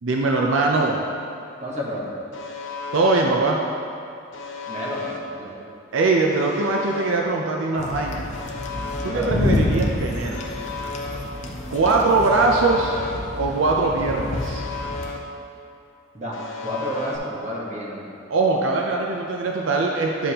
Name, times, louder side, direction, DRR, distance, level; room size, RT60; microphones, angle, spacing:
voice 1, 0.0-1.0 2.9-3.6 5.9-8.3 9.0-10.5 11.7-13.0 13.4-14.7 18.3-20.3, right 3 dB, 80° right, 0 dB, 0.5 m, -21 dB
voice 2, 1.6-2.1 4.7-5.5 9.0-9.3 16.1-18.1, equal, 35° right, -4 dB, 1.2 m, -31 dB
Alarm, 2.3-3.2 4.3-5.2 6.3-7.2 8.3-9.2 10.3-11.2 12.3-13.2 14.3-15.2 16.3-17.2, left 4 dB, 75° left, 0.8 m, -34 dB
sound 1, 7.8-15.1, left 1 dB, 35° left, 0.6 m, -28 dB
10.0 x 5.2 x 2.9 m, 2.6 s
head